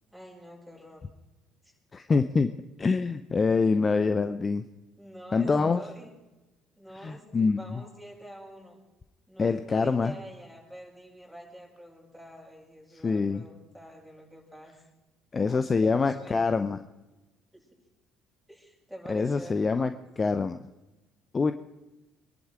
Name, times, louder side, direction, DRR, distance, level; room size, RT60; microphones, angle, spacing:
voice 1, 0.1-1.0 1.6-1.7 5.0-6.1 6.8-8.8 9.3-14.7 15.8-16.5 17.5-17.7 18.5-19.9, equal, 5° left, -3 dB, 7.6 m, -46 dB
voice 2, 1.9-2.5 2.8-4.6 5.3-5.8 7.0-7.8 9.4-10.1 13.0-13.4 15.3-16.8 19.1-19.9 20.2-20.6 21.3-21.5, left 4 dB, 30° left, 10 dB, 0.8 m, -25 dB
24.0 x 11.0 x 4.8 m, 1.0 s
figure-of-eight pair, 55°, 0 cm